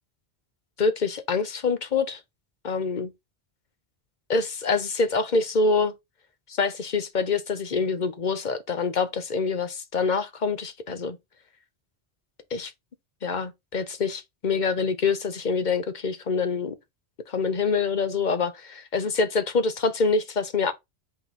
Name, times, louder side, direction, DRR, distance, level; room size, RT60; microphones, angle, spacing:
voice 1, 0.8-2.2 2.6-3.1 4.3-5.9 6.5-11.2 12.5-12.7 13.2-16.7 17.3-20.7, left 4 dB, 50° left, 0.9 m, -25 dB
5.9 x 4.0 x 4.0 m
omnidirectional pair, 1.1 m